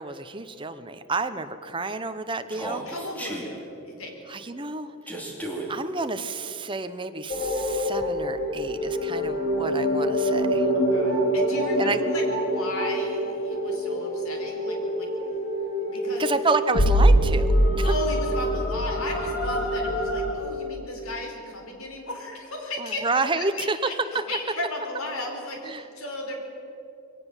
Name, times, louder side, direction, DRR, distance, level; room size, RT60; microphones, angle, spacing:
voice 1, 0.0-2.8 4.3-4.9 5.7-10.7 11.8-12.0 16.2-17.9 22.8-23.8 25.6-25.8, right 3 dB, 20° right, 9 dB, 0.9 m, -29 dB
voice 2, 2.5-4.1 10.7-15.1 15.8-16.3 17.8-23.1 23.3-26.3, left 2 dB, 75° left, 2 dB, 4.1 m, -35 dB
Human voice, 2.5-3.5 5.1-5.7, right 1 dB, 5° left, 2.6 m, -34 dB
sound 1, 7.3-20.3, equal, 45° left, 2.8 m, -24 dB
22.0 x 18.0 x 7.3 m, 2.7 s
head